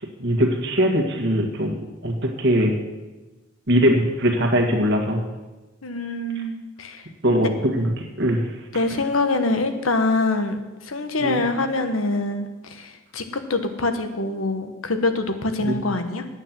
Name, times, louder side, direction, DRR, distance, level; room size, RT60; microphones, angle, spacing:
voice 1, 0.2-2.8 3.7-5.2 7.2-8.5 11.2-11.4 15.6-15.8, equal, 60° right, 3 dB, 1.9 m, -21 dB
voice 2, 5.8-7.1 8.7-16.3, left 2 dB, 85° left, 8 dB, 1.3 m, -25 dB
9.9 x 8.9 x 7.6 m, 1.2 s
head